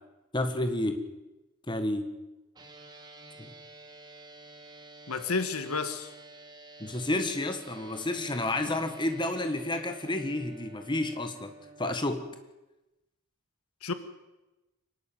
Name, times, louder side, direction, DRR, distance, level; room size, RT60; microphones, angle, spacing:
voice 1, 0.3-1.0 1.7-2.1 3.4-3.5 6.8-11.5 11.8-12.2, left 1 dB, 20° left, 7 dB, 1.7 m, -30 dB
sound 1, 2.5-11.9, right 2 dB, 20° right, 2.4 m, -50 dB
voice 2, 5.1-6.1 13.8-13.9, left 4 dB, 90° left, 10 dB, 1.8 m, -31 dB
25.0 x 12.0 x 9.4 m, 1.0 s
head